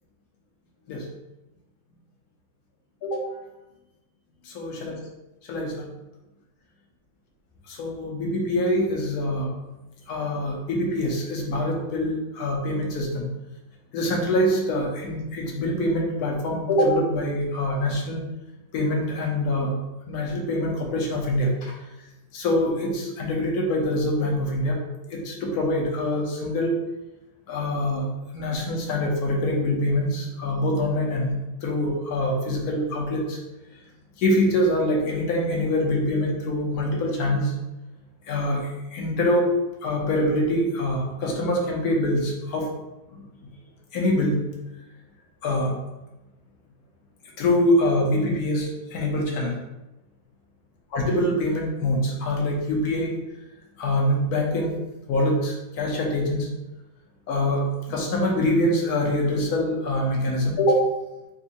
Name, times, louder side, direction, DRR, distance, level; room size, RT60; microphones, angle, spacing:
voice 1, 4.4-4.9 5.5-5.9 7.7-9.5 10.1-13.2 13.9-18.2 18.7-19.7 20.1-21.8 22.3-24.8 25.1-26.8 27.5-28.1 28.3-33.4 34.2-37.5 38.3-39.5 39.8-42.7 43.1-43.2 43.9-44.4 45.4-45.8 47.4-49.5 50.9-53.1 53.8-54.7 55.1-56.5 57.3-60.9, left 1 dB, 60° left, -1 dB, 1.1 m, -24 dB
3.6 x 2.6 x 4.0 m, 1.0 s
omnidirectional pair, 2.2 m